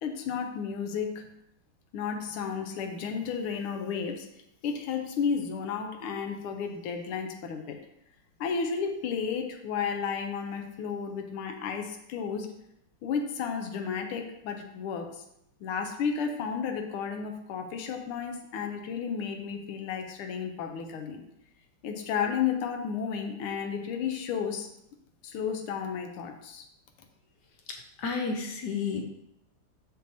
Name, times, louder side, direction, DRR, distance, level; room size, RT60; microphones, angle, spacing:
voice 1, 0.0-1.3 1.9-4.3 4.6-7.8 8.4-12.5 13.0-15.1 15.6-21.2 21.8-24.7 25.2-26.6, left 6 dB, 90° left, 4 dB, 1.6 m, -32 dB
voice 2, 28.0-29.0, left 5 dB, 70° left, 3 dB, 1.1 m, -31 dB
6.7 x 6.3 x 2.7 m, 0.80 s
omnidirectional pair, 2.3 m